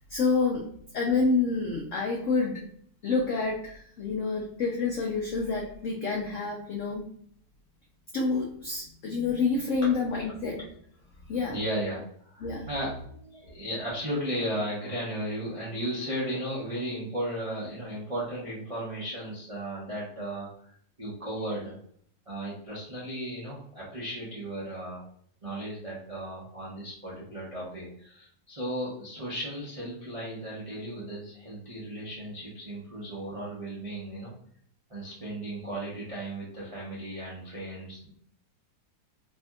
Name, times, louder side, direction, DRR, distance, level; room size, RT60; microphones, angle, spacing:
voice 1, 0.1-0.7 0.9-2.6 3.0-7.0 8.1-10.6 11.3-11.6 12.4-12.7, left 4 dB, 85° left, -1 dB, 0.6 m, -28 dB
voice 2, 11.4-12.0 12.3-21.7 22.3-25.0 25.4-34.3 34.9-38.1, right 1 dB, 55° right, -7 dB, 0.3 m, -35 dB
3.3 x 2.7 x 2.2 m, 0.62 s
omnidirectional pair, 2.0 m